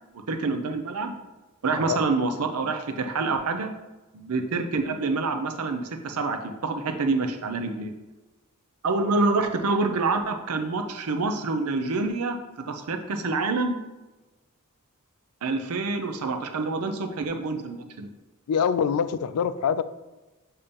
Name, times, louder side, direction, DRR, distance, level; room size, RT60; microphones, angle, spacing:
voice 1, 0.1-1.1 1.6-3.7 4.1-7.9 8.8-12.4 12.7-13.8 15.4-18.1, right 3 dB, 90° right, 6 dB, 0.6 m, -27 dB
voice 2, 18.5-19.8, left 7 dB, 80° left, 13 dB, 0.4 m, -24 dB
6.9 x 2.8 x 5.2 m, 1.1 s
head